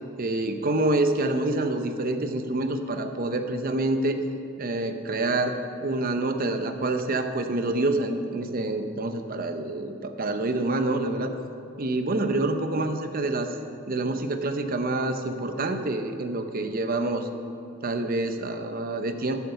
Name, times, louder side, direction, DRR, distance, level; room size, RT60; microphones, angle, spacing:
voice 1, 0.2-4.2 4.6-11.3 11.8-13.5 13.9-17.3 17.8-19.4, right 2 dB, 45° right, 7 dB, 0.7 m, -27 dB
11.5 x 7.4 x 6.8 m, 2.6 s
head